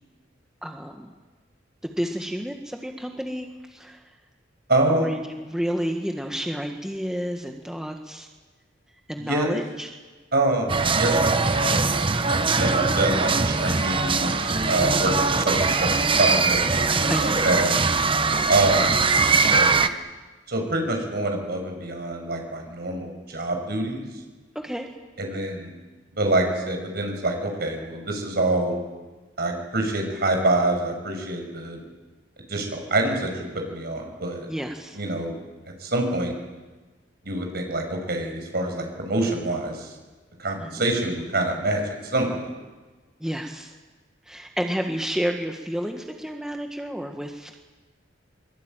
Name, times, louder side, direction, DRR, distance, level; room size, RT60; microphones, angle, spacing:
voice 1, 0.6-1.1 1.8-4.1 5.0-8.3 9.1-9.9 14.8-15.1 17.1-17.5 24.5-25.0 34.5-35.0 40.6-40.8 43.2-43.7 44.2-47.5, equal, 5° right, 2 dB, 1.6 m, -30 dB
voice 2, 4.7-5.1 9.2-9.5 10.3-16.6 17.0-17.7 18.5-19.0 19.4-19.8 20.5-24.0 25.2-25.7 26.1-28.7 29.4-31.8 32.5-34.5 34.9-35.3 35.8-36.3 37.2-39.9 40.4-41.8 42.1-42.5, right 2 dB, 60° right, 3 dB, 6.3 m, -26 dB
sound 1, 10.7-19.9, right 4 dB, 30° right, 1.0 m, -21 dB
23.5 x 22.5 x 9.1 m, 1.3 s
head